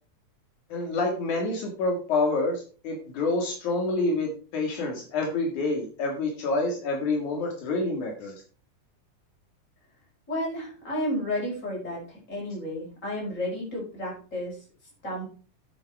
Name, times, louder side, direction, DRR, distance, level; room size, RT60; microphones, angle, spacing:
voice 1, 0.7-8.3, left 2 dB, 70° left, 1 dB, 3.3 m, -27 dB
voice 2, 10.3-14.5 15.0-15.3, left 1 dB, 20° left, -3 dB, 5.8 m, -32 dB
9.1 x 8.8 x 4.6 m, 0.38 s
omnidirectional pair, 3.6 m